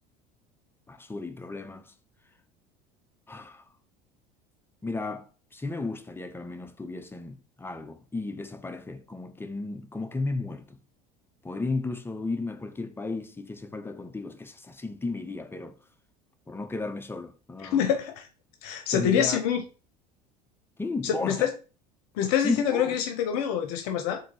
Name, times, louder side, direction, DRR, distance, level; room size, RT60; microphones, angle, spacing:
voice 1, 0.9-1.9 3.3-3.6 4.8-10.8 11.4-15.8 16.5-17.9 18.9-19.4 20.8-21.5 22.4-23.0, left 3 dB, 10° left, 0.5 m, -34 dB
voice 2, 17.6-18.3 18.6-19.6 21.0-21.5 22.2-24.2, left 8 dB, 70° left, 0.6 m, -26 dB
3.9 x 2.7 x 3.0 m
hypercardioid pair, 75°, 21 cm